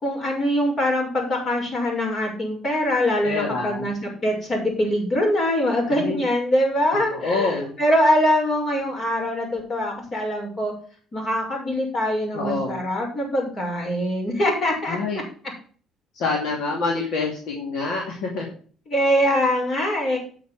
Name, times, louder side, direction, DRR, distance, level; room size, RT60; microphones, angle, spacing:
voice 1, 0.0-3.9 4.2-10.7 11.1-15.0 18.9-20.2, equal, 40° left, 1 dB, 6.2 m, -23 dB
voice 2, 3.2-3.9 5.9-6.2 7.1-7.7 12.3-12.8 14.9-15.2 16.1-18.5, left 3 dB, 70° left, 0 dB, 2.6 m, -26 dB
9.1 x 6.8 x 6.1 m, 0.43 s
cardioid pair, 100°, 0 cm